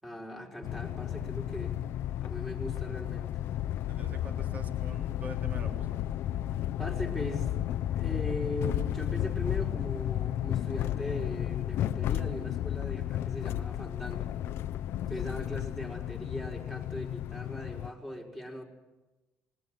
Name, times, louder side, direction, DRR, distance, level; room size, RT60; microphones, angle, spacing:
voice 1, 0.0-1.8 2.2-3.3 6.8-7.5 7.9-14.3 15.1-18.6, equal, 5° right, 0 dB, 4.4 m, -39 dB
sound 1, 0.6-17.9, left 12 dB, 65° left, 0.7 m, -33 dB
voice 2, 3.9-5.9, right 2 dB, 35° right, 5 dB, 3.3 m, -45 dB
20.5 x 19.0 x 9.3 m, 1.1 s
cardioid pair, 115°, 5 cm